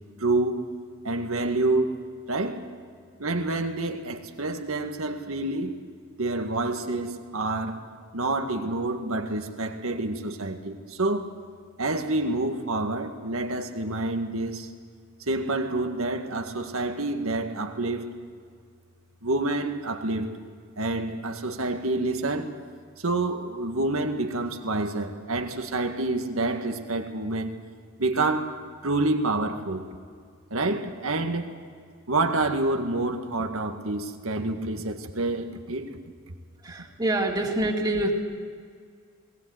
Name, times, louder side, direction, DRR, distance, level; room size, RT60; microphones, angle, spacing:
voice 1, 0.2-0.7 1.0-2.7 3.2-5.7 6.2-7.8 8.1-11.3 11.8-14.7 15.3-18.1 19.2-20.4 20.8-22.5 23.0-27.6 28.0-29.9 30.5-31.6 32.1-36.0, right 2 dB, 85° right, 1.8 m, -28 dB
voice 2, 36.6-38.1, right 1 dB, 20° right, 2.2 m, -26 dB
21.0 x 18.5 x 8.0 m
head